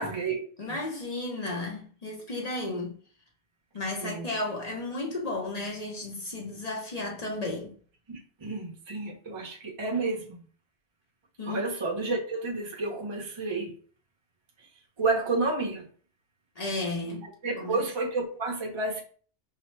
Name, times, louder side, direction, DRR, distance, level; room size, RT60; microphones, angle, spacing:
voice 1, 0.0-0.4 0.7-0.8 4.0-4.3 8.1-10.4 11.4-13.7 15.0-15.8 17.4-19.0, right 3 dB, 30° right, 0.6 m, -30 dB
voice 2, 0.6-2.9 3.7-7.7 11.4-11.6 16.6-17.3 17.6-17.8, left 2 dB, 40° left, 0.7 m, -33 dB
4.8 x 2.0 x 3.2 m
omnidirectional pair, 1.2 m